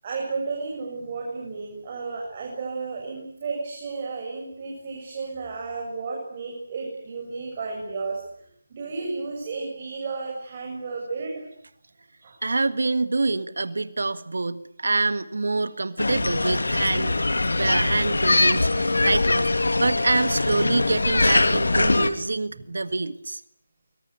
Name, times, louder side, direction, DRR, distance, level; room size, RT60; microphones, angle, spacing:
voice 1, 0.0-8.2 8.7-11.5 12.2-12.4 22.5-22.6, right 4 dB, 30° right, 0 dB, 7.4 m, -33 dB
voice 2, 12.4-23.4, right 3 dB, 70° right, 13 dB, 1.7 m, -26 dB
sound 1, 16.0-22.1, left 2 dB, 80° left, 3.0 m, -22 dB
25.0 x 24.5 x 8.3 m, 0.67 s
figure-of-eight pair, 160°, 0 cm